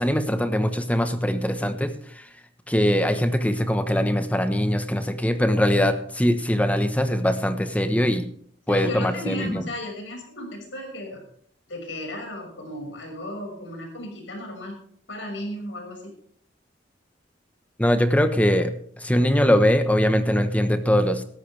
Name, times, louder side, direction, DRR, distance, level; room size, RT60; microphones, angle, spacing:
voice 1, 0.0-2.3 2.7-8.3 8.7-9.6 17.8-21.2, equal, 10° left, 8 dB, 1.1 m, -22 dB
voice 2, 8.7-11.2 11.7-14.8 15.1-16.1, left 1 dB, 85° left, 2 dB, 5.9 m, -35 dB
17.0 x 13.5 x 3.4 m, 0.63 s
head